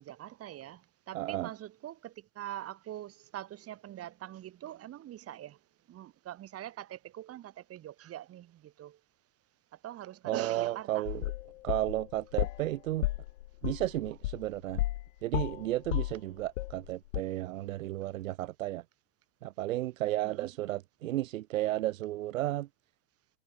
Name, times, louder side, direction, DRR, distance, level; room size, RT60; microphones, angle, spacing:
voice 1, 0.0-5.6 5.9-9.0 9.8-11.1 20.2-20.5, right 12 dB, 35° right, 6.6 m, -43 dB
voice 2, 1.1-1.5 10.2-11.2 11.6-13.1 13.6-14.8 15.2-18.8 19.4-22.7, right 15 dB, 70° right, 1.1 m, -33 dB
sound 1, 11.1-12.7 13.0-15.1 15.3-16.9 17.1-17.2, left 17 dB, 65° left, 2.8 m, -33 dB
hypercardioid pair, 105°, 41 cm